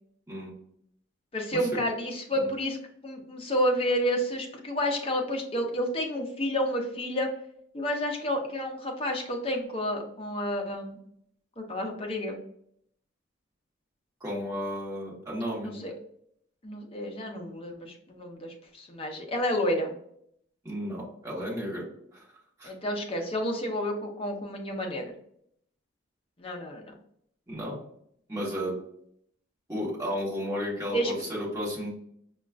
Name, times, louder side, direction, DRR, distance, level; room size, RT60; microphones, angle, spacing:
voice 1, 1.3-2.8 3.0-7.3 7.7-11.0 11.6-12.4 15.6-15.9 16.6-19.9 22.6-25.1 26.4-26.9 30.9-31.1, equal, 25° left, 2 dB, 0.5 m, -30 dB
voice 2, 14.2-15.8 20.6-21.8 22.1-22.2 22.6-22.7 27.5-27.8 28.3-28.7 29.7-31.9, equal, 15° right, -6 dB, 1.1 m, -33 dB
5.0 x 2.3 x 2.4 m, 0.70 s
head